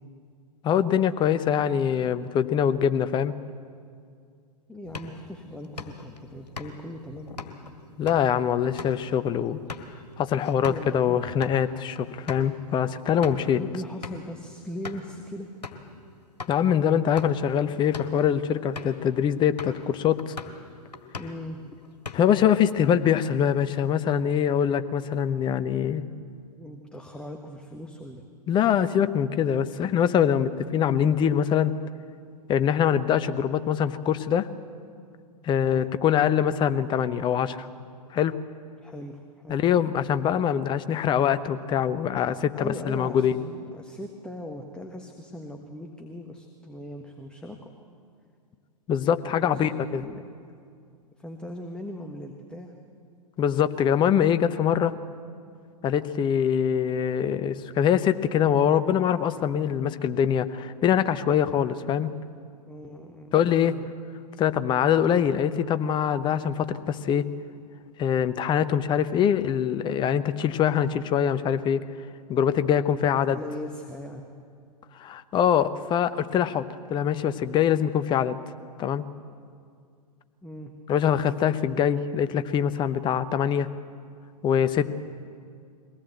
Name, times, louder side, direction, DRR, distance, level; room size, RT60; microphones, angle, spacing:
voice 1, 0.6-3.3 8.0-9.6 10.2-13.6 16.5-20.4 22.1-26.0 28.5-31.7 32.5-34.5 35.4-37.7 38.1-38.4 39.5-43.4 48.9-50.0 53.4-54.9 55.8-62.1 63.3-63.8 64.4-67.3 68.0-71.8 72.3-73.4 75.0-78.4 78.8-79.0 80.9-83.7 84.4-84.9, left 9 dB, 25° left, 11 dB, 0.9 m, -23 dB
voice 2, 4.7-7.3 10.7-11.2 13.6-15.5 21.2-21.6 26.6-28.2 35.6-35.9 38.8-39.6 42.5-47.7 49.2-50.2 51.2-52.7 62.7-63.3 63.6-63.9 73.0-74.2 80.4-80.7, left 1 dB, 5° left, 2 dB, 1.4 m, -39 dB
sound 1, 4.8-10.9 11.3-11.6 12.0-12.1 12.3-12.5 13.0-13.5 14.0-14.3 14.8-15.1 15.6-15.9 16.4-16.6 17.0-17.5 17.8-18.2 18.8-19.0 19.6-19.9 20.2-20.6 20.9-21.5 21.8-22.5, left 4 dB, 80° left, 2.0 m, -40 dB
22.5 x 18.0 x 8.0 m, 2.2 s
figure-of-eight pair, 110°, 20 cm